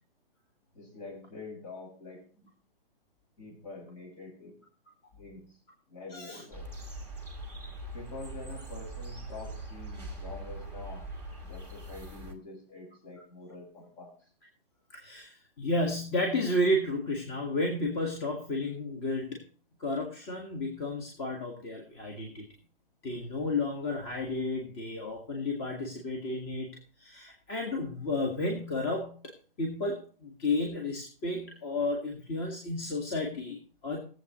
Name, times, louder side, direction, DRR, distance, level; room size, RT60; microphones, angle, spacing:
voice 1, 0.7-2.5 3.4-4.6 5.2-5.5 5.9-6.7 7.9-11.1 11.4-14.2, left 3 dB, 50° left, 1 dB, 6.6 m, -46 dB
voice 2, 6.1-6.4 14.9-19.4 19.8-22.5 23.0-26.7 27.0-29.3 29.6-34.0, left 2 dB, 25° left, 1 dB, 2.0 m, -32 dB
sound 1, 6.5-12.3, right 2 dB, 5° left, 1.2 m, -42 dB
20.5 x 7.9 x 3.1 m, 0.42 s
hypercardioid pair, 150°, 29 cm